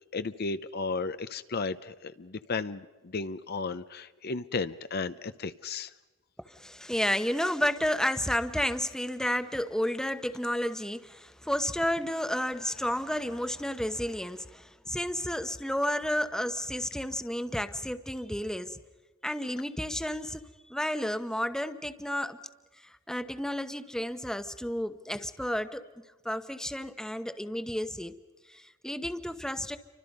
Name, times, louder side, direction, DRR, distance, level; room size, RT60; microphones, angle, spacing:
voice 1, 0.1-5.9, left 4 dB, 55° left, 0.7 m, -34 dB
voice 2, 6.4-18.8 19.2-22.4 22.8-25.9 26.2-28.1 28.5-29.8, equal, 5° left, 1.0 m, -31 dB
29.5 x 25.0 x 5.4 m
head